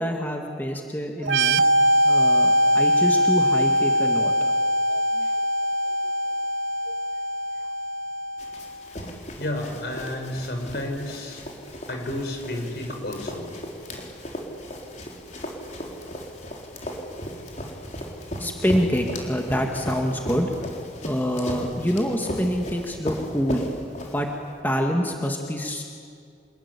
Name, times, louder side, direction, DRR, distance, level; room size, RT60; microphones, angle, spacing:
voice 1, 0.0-1.6 2.0-4.6 4.9-5.3 6.9-7.0 18.4-20.5 21.0-23.7 24.0-24.3 24.6-25.8, equal, 10° left, 2 dB, 1.9 m, -26 dB
sound 1, 1.2-8.7, equal, 90° right, 0.9 m, -22 dB
Run, 8.4-24.5, equal, 40° left, 4.2 m, -36 dB
voice 2, 9.4-11.4 11.9-13.5, left 1 dB, 60° left, 3 dB, 5.8 m, -31 dB
27.5 x 21.5 x 9.9 m, 2.3 s
head